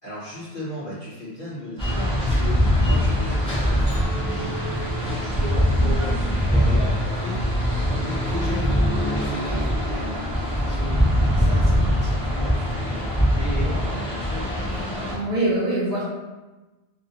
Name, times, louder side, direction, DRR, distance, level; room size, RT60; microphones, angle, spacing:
voice 1, 0.0-7.4 7.8-14.5, equal, 45° left, -11 dB, 0.9 m, -36 dB
sound 1, 1.8-15.2, equal, 5° left, 0.5 m, -22 dB
Chink clink, 3.9-8.2 8.7-9.1, right 2 dB, 85° right, 0.9 m, -41 dB
voice 2, 15.1-16.0, right 1 dB, 60° right, -10 dB, 0.9 m, -23 dB
2.5 x 2.0 x 2.7 m, 1.1 s
omnidirectional pair, 1.1 m